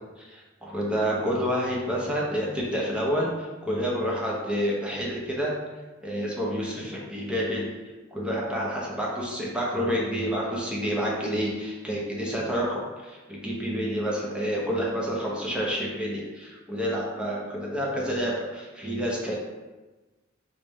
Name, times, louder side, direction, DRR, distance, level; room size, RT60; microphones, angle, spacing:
voice 1, 0.2-5.5 6.0-7.7 8.1-19.4, equal, 5° right, -4 dB, 0.8 m, -29 dB
4.0 x 3.2 x 3.6 m, 1.2 s
head